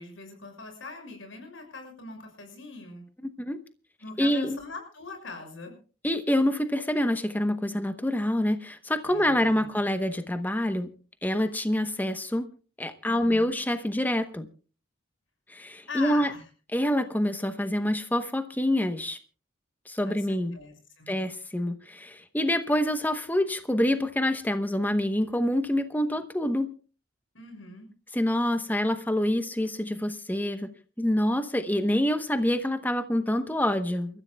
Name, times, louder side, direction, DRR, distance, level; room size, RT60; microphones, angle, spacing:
voice 1, 0.0-3.1 4.0-5.8 9.0-9.7 13.1-13.6 15.9-16.5 20.0-20.3 20.5-21.2 27.3-27.9, left 3 dB, 85° left, 3 dB, 6.2 m, -42 dB
voice 2, 4.2-4.6 6.0-10.9 11.2-12.5 12.8-14.5 15.5-16.3 16.7-19.2 19.9-20.6 21.1-26.7 28.1-30.7 31.0-34.2, left 1 dB, 10° left, 8 dB, 0.9 m, -26 dB
28.5 x 14.5 x 2.3 m, 0.37 s
head